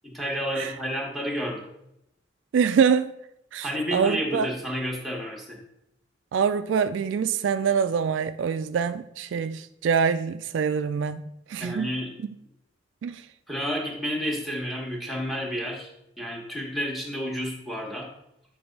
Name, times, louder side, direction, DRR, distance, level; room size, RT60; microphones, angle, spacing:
voice 1, 0.0-1.7 3.6-5.6 11.6-12.1 13.5-15.9 16.2-18.1, equal, ahead, 1.3 m, -30 dB
voice 2, 2.5-3.1 3.5-4.5 6.3-11.9 13.0-13.2, right 6 dB, 75° right, 0.3 m, -25 dB
8.8 x 3.4 x 5.3 m
head